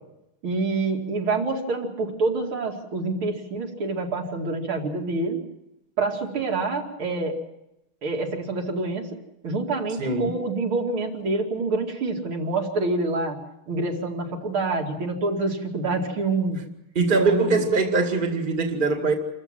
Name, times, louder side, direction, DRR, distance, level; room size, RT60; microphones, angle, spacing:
voice 1, 0.4-5.4 6.0-7.4 8.0-9.1 9.4-13.4 13.7-16.6 17.2-17.6, right 3 dB, 75° right, 3.4 m, -26 dB
voice 2, 10.0-10.4 17.0-19.1, right 3 dB, 25° right, 2.2 m, -22 dB
27.5 x 14.5 x 7.5 m
omnidirectional pair, 2.3 m